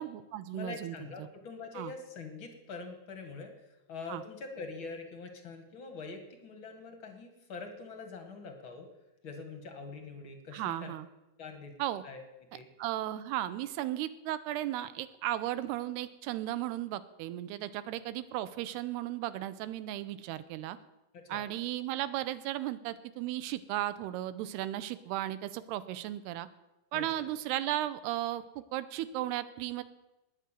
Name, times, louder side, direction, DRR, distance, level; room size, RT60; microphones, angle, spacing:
voice 1, 0.0-1.3 1.8-1.9 4.1-4.2 10.5-11.1 11.8-12.0 12.8-20.8 21.3-26.5 26.9-29.8, right 14 dB, 85° right, 14 dB, 2.8 m, -35 dB
voice 2, 0.5-8.9 9.2-10.9 11.4-11.7 12.0-12.2 12.5-12.7 21.1-21.5 26.9-27.3, left 4 dB, 45° left, 5 dB, 1.8 m, -44 dB
20.0 x 6.8 x 9.0 m, 0.98 s
omnidirectional pair, 4.7 m